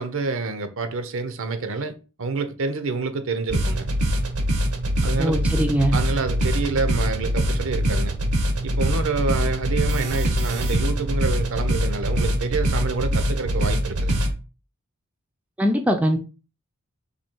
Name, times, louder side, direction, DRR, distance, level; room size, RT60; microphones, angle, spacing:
voice 1, 0.0-3.9 5.0-5.4 5.9-8.1 8.6-14.2, right 4 dB, 60° right, 0.7 m, -27 dB
sound 1, 3.5-14.3, equal, 80° right, 1.0 m, -23 dB
voice 2, 5.2-6.0 15.6-16.2, equal, 5° right, 0.5 m, -21 dB
4.2 x 2.8 x 4.5 m
head